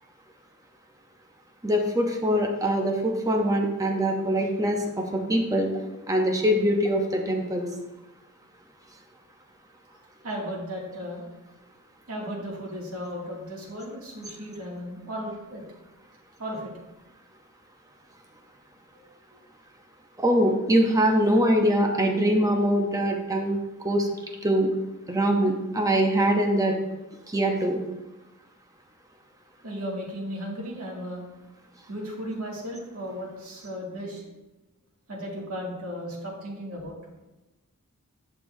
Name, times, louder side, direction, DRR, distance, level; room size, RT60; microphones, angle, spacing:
voice 1, 1.6-5.7 6.1-7.7 20.2-23.6 23.8-24.1 24.4-24.7 25.1-26.8 27.3-27.8, equal, 15° right, 2 dB, 0.8 m, -23 dB
voice 2, 10.2-11.3 12.1-15.6 16.4-16.6 29.6-31.2 31.9-34.2 35.1-37.0, equal, 90° right, -4 dB, 2.4 m, -35 dB
10.0 x 6.8 x 2.7 m, 1.0 s
head